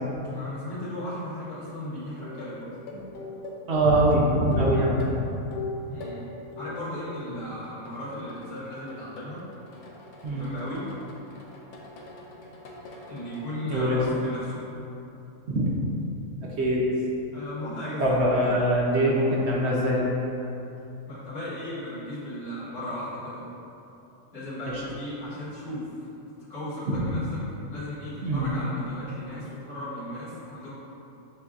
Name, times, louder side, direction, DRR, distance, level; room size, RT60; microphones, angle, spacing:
voice 1, 0.2-2.7 5.9-6.3 6.5-9.5 10.3-10.9 13.0-14.6 17.3-18.5 21.1-23.4 24.3-26.1 26.5-30.7, left 1 dB, 45° left, -13 dB, 1.9 m, -36 dB
sound 1, 1.7-1.8 2.2-6.2 6.5-7.3 7.6-13.6 14.1-14.5 15.6-15.7, left 2 dB, 65° left, 0.9 m, -41 dB
voice 2, 3.7-5.1 10.2-10.5 13.6-14.0 15.5-15.7 16.4-16.8 18.0-20.0 26.9-27.0 28.2-28.5, right 1 dB, 60° right, -4 dB, 0.8 m, -23 dB
7.4 x 2.7 x 2.4 m, 2.9 s
omnidirectional pair, 1.4 m